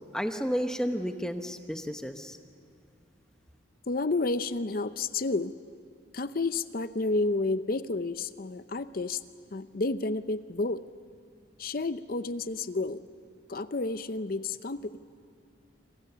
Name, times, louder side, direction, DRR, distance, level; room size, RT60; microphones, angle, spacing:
voice 1, 0.0-2.4, equal, 5° left, 6 dB, 0.9 m, -32 dB
voice 2, 3.9-5.5 6.1-9.2 9.5-10.8 11.6-13.0 13.5-15.0, left 3 dB, 50° left, 13 dB, 0.6 m, -30 dB
27.0 x 25.5 x 6.9 m, 2.4 s
head